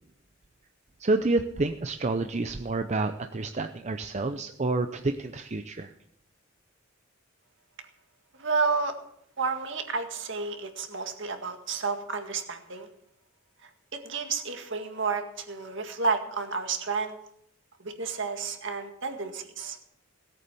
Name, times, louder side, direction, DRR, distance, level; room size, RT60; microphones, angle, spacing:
voice 1, 1.0-5.9, right 2 dB, 35° right, 7 dB, 0.6 m, -28 dB
voice 2, 8.4-9.0 9.4-12.9 13.6-17.2 17.8-19.8, right 4 dB, 60° right, 5 dB, 2.0 m, -31 dB
17.5 x 8.5 x 6.9 m, 0.73 s
head